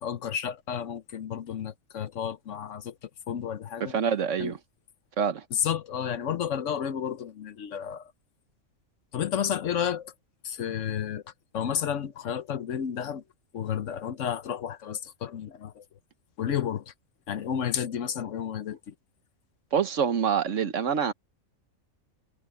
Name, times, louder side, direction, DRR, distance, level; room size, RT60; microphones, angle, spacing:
voice 1, 0.0-4.0 4.4-4.5 5.5-8.1 9.1-10.1 10.4-11.2 11.5-13.2 13.5-15.8 16.4-16.9 17.3-18.9, left 8 dB, 65° left, 1.2 m, -31 dB
voice 2, 3.8-4.6 5.2-5.4 19.7-21.1, right 7 dB, 65° right, 1.4 m, -26 dB
omnidirectional pair, 1.4 m